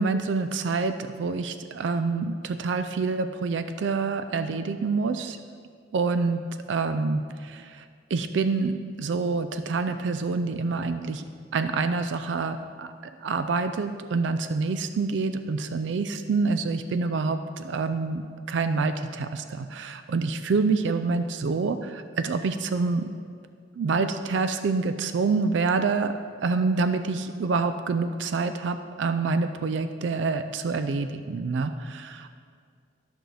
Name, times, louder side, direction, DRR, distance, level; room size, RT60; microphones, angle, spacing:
voice 1, 0.0-5.4 5.9-6.4 6.7-11.2 11.5-12.9 13.2-18.2 18.5-23.1 23.8-26.1 26.4-32.3, right 4 dB, 70° right, 9 dB, 0.4 m, -27 dB
12.5 x 6.2 x 3.3 m, 2.1 s
head